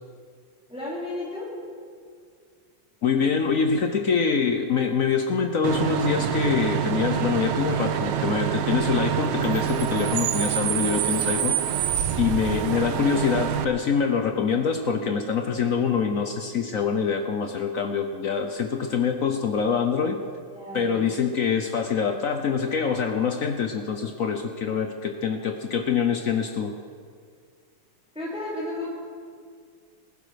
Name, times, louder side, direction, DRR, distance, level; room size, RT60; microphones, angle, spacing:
voice 1, 0.7-1.5 13.2-13.4 20.5-21.1 28.1-28.9, left 2 dB, 5° right, -6 dB, 3.5 m, -33 dB
voice 2, 3.0-11.6 12.2-20.2 20.7-26.7, left 6 dB, 65° left, 5 dB, 0.8 m, -25 dB
Bus / Idling / Screech, 5.6-13.6, right 9 dB, 80° right, 1.7 m, -26 dB
20.0 x 12.0 x 5.1 m, 2.1 s
omnidirectional pair, 2.4 m